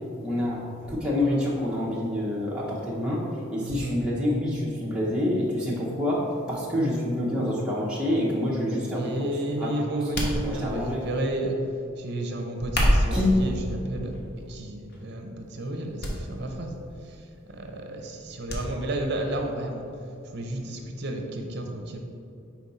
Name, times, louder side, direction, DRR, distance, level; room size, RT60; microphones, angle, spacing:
voice 1, 0.2-0.6 0.9-3.2 3.5-9.3 9.6-9.7 10.4-11.0 13.1-13.4, left 1 dB, 5° right, -7 dB, 0.8 m, -27 dB
voice 2, 3.6-4.0 8.9-11.6 12.0-14.2 14.5-16.7 17.0-17.2 17.5-19.8 20.3-22.0, right 1 dB, 55° right, 3 dB, 0.7 m, -32 dB
sound 1, 10.1-10.9 12.6-13.3 14.1-14.4 14.9-15.0 16.0-16.2 16.5-16.6 18.5-18.6 19.0-19.1, equal, 55° left, 0.9 m, -25 dB
5.2 x 4.5 x 4.1 m, 2.5 s
head